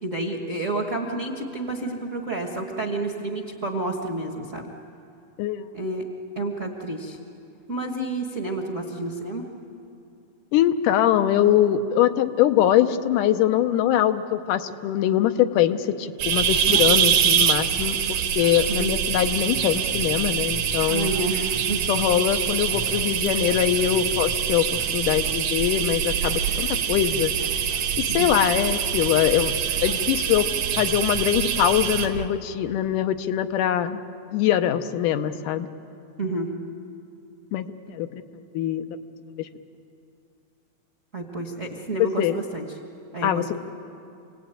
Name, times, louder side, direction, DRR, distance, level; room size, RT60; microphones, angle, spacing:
voice 1, 0.0-4.7 5.7-6.0 6.3-7.2 7.7-9.4 18.7-19.0 20.9-21.9 28.1-28.4 36.2-36.5 41.1-42.6 43.1-43.6, right 2 dB, 40° right, 1 dB, 1.0 m, -30 dB
voice 2, 10.5-21.1 21.9-27.3 28.1-29.5 29.8-30.5 30.8-34.0 34.3-35.7 37.5-38.2 38.5-38.8 39.4-39.5 42.2-42.4 43.2-43.6, left 11 dB, 80° left, 9 dB, 2.4 m, -23 dB
sound 1, 16.2-32.3, right 8 dB, 65° right, 2.0 m, -24 dB
27.5 x 19.5 x 9.0 m, 2.6 s
omnidirectional pair, 3.7 m